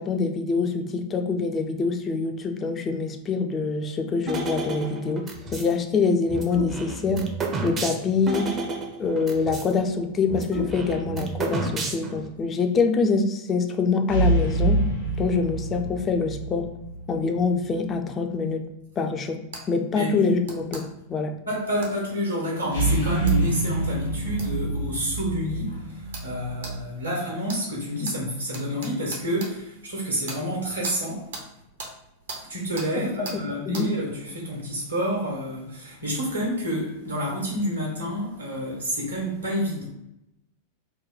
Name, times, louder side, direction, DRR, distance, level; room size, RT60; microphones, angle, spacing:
voice 1, 0.0-7.2 7.6-8.5 9.0-14.8 15.2-16.7 17.1-18.6 19.0-19.4 19.7-20.8 21.1-21.3 33.7-33.9, left 4 dB, 25° left, 5 dB, 0.4 m, -25 dB
sound 1, 4.3-5.7 6.3-9.7 10.0-10.1 10.3-12.3, right 3 dB, 25° right, 0.5 m, -31 dB
sound 2, 9.0-10.0 14.1-17.7 22.7-26.8, right 2 dB, 75° left, 1.2 m, -27 dB
sound 3, 19.5-19.6 20.4-20.8 21.8-21.9 23.3-23.4 24.4-24.5 25.2-25.3 26.1-26.3 26.6-26.7 27.5-27.6 28.0-28.2 28.5-29.5 30.3-30.4 30.8-31.0 31.3-31.5 31.8-31.9 32.3-32.4 32.8-32.9 33.2-33.4 33.7-33.9, right 3 dB, 60° right, 0.7 m, -37 dB
voice 2, 21.5-31.3 32.4-39.8, equal, 80° right, -1 dB, 1.2 m, -29 dB
3.0 x 2.1 x 3.9 m, 0.86 s
figure-of-eight pair, 90°, 0 cm